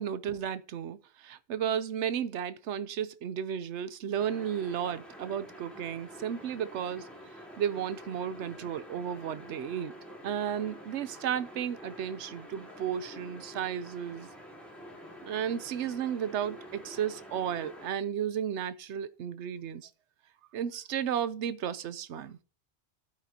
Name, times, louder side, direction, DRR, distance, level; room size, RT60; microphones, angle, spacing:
voice 1, 0.0-7.1 7.6-9.9 10.2-14.3 15.2-19.9 20.5-22.4, right 9 dB, 85° right, 1.0 m, -33 dB
sound 1, 4.2-17.9, equal, ahead, 3.6 m, -48 dB
11.5 x 9.2 x 2.8 m
omnidirectional pair, 1.2 m